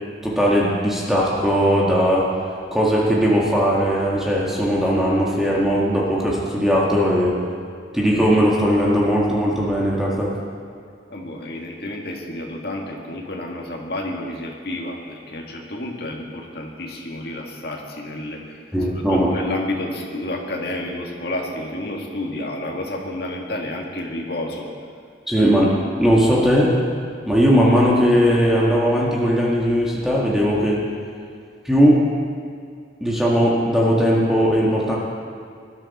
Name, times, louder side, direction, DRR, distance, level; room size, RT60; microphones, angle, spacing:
voice 1, 0.2-2.3 2.7-7.4 7.9-10.3 18.7-19.3 25.3-26.8 27.3-30.9 31.6-32.1 33.0-35.0, equal, ahead, -5 dB, 1.8 m, -18 dB
voice 2, 11.1-24.7 25.4-25.5, left 1 dB, 60° left, -1 dB, 2.0 m, -30 dB
19.5 x 12.5 x 4.3 m, 2.2 s
head